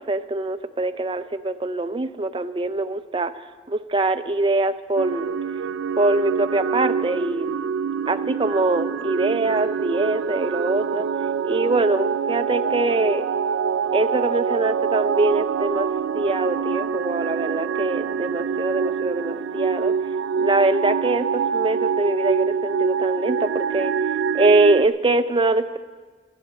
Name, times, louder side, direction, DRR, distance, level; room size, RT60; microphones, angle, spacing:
voice 1, 0.0-5.3 6.0-7.5 8.1-11.1 11.4-13.2 13.9-15.9 16.1-19.9 20.4-23.9 24.3-25.8, right 2 dB, 30° right, 11 dB, 0.5 m, -23 dB
sound 1, 5.0-24.9, right 6 dB, 90° right, 0.3 m, -25 dB
27.5 x 9.3 x 4.3 m, 1.5 s
head